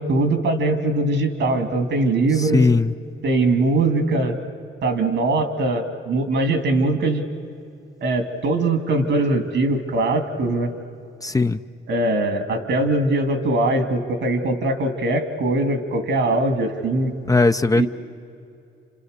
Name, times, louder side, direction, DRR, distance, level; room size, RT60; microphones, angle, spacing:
voice 1, 0.0-2.6 3.2-4.4 4.8-7.2 8.0-10.7 11.9-17.1 17.7-17.9, right 2 dB, 70° right, 7 dB, 2.7 m, -21 dB
voice 2, 2.4-2.9 11.2-11.6 17.3-17.9, left 3 dB, 15° left, 9 dB, 0.6 m, -18 dB
30.0 x 26.5 x 6.7 m, 2.6 s
cardioid pair, 90°, 20 cm